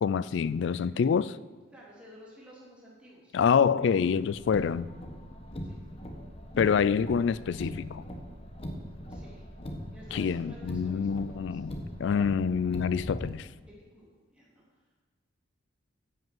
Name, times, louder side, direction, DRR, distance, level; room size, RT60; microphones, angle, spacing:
voice 1, 0.0-1.4 3.3-4.9 6.6-8.0 10.1-11.7 12.0-13.5, left 6 dB, 60° left, 0.3 m, -26 dB
voice 2, 1.7-3.4 5.6-5.8 9.1-9.5 9.9-11.6 13.7-14.8, equal, 5° right, 3.0 m, -53 dB
Car, 4.3-13.3, equal, 30° left, 1.0 m, -41 dB
10.5 x 5.6 x 7.5 m
head